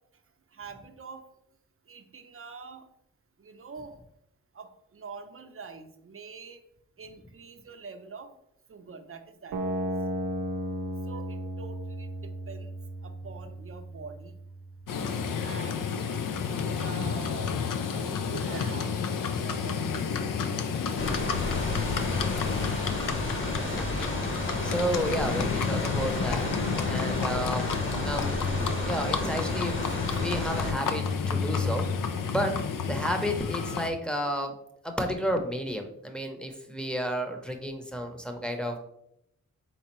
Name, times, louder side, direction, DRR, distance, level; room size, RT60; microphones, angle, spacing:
voice 1, 0.5-1.2 1.9-2.8 3.4-4.0 4.5-6.6 7.0-8.3 8.7-9.7 11.1-12.7 13.0-14.3 15.4-15.8 16.7-17.5 17.9-19.0 19.4-20.6 26.0-26.1 37.9-38.0, right 5 dB, 40° right, 7 dB, 0.6 m, -45 dB
sound 1, 9.5-15.5, right 1 dB, 85° right, 0.5 m, -35 dB
Livestock farm animals working animals, 14.9-33.9, left 6 dB, 75° left, 0.5 m, -30 dB
sound 2, 21.0-30.7, left 1 dB, 35° left, 1.1 m, -33 dB
voice 2, 23.6-24.1 24.6-26.5 26.8-27.6 28.0-31.9 32.3-32.6 32.9-34.5 34.8-38.8, equal, 5° left, 4 dB, 0.8 m, -32 dB
4.4 x 3.6 x 3.0 m, 0.77 s
cardioid pair, 50°, 33 cm